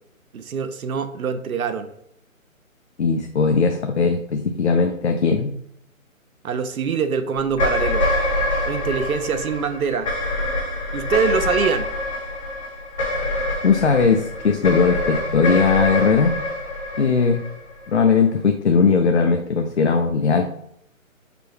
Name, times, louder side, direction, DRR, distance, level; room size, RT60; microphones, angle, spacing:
voice 1, 0.3-1.9 6.4-8.1 8.6-10.1 10.9-11.9, right 6 dB, 85° right, 10 dB, 0.6 m, -24 dB
voice 2, 3.0-5.5 13.6-16.3 17.0-17.4 17.9-20.5, left 5 dB, 55° left, 5 dB, 0.5 m, -19 dB
sound 1, 7.5-18.0, left 1 dB, 25° left, 1.2 m, -25 dB
5.2 x 2.2 x 4.5 m, 0.73 s
hypercardioid pair, 175°, 42 cm